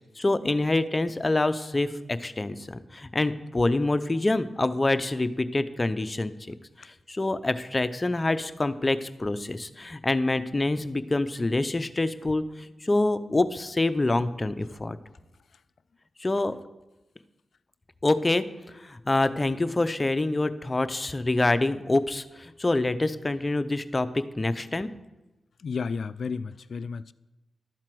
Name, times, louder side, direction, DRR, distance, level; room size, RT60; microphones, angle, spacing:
voice 1, 0.2-6.3 6.8-15.0 16.2-16.6 18.0-18.4 18.7-24.9, left 2 dB, 30° left, 11 dB, 0.6 m, -26 dB
voice 2, 25.6-27.1, left 5 dB, 75° left, 16 dB, 0.3 m, -32 dB
12.0 x 4.4 x 7.7 m, 1.0 s
cardioid pair, 60°, 0 cm